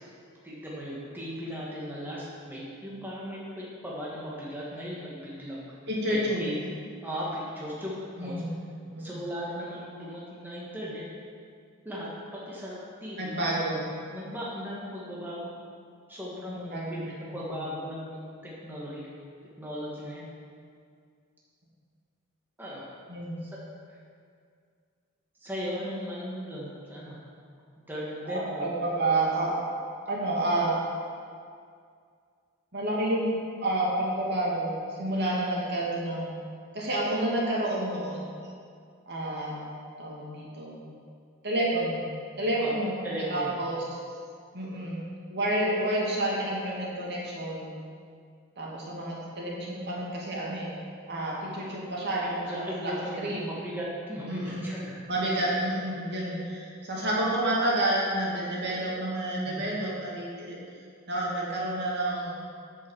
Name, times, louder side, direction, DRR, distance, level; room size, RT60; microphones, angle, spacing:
voice 1, 0.4-5.6 6.1-6.6 7.0-8.4 9.0-11.0 11.8-15.5 16.1-18.3 18.6-19.1 19.6-20.2 22.6-22.9 23.4-23.5 23.9-24.0 25.4-27.2 27.9-28.7 42.6-42.7 43.0-43.5 52.5-55.0 59.4-59.7, equal, 10° right, -7 dB, 1.8 m, -37 dB
voice 2, 5.9-6.6 8.2-8.5 8.9-9.1 13.2-13.8 16.5-17.7 23.1-23.4 28.2-29.6 30.1-30.8 32.7-33.3 33.6-36.4 36.7-38.2 39.1-39.6 40.0-40.8 41.4-42.0 42.4-43.0 43.3-43.8 44.5-45.0 45.3-47.8 48.6-50.8 51.1-53.5 54.3-54.7 55.1-60.6 61.1-62.5, right 1 dB, 50° right, -5 dB, 2.5 m, -29 dB
8.6 x 7.2 x 7.3 m, 2.2 s
head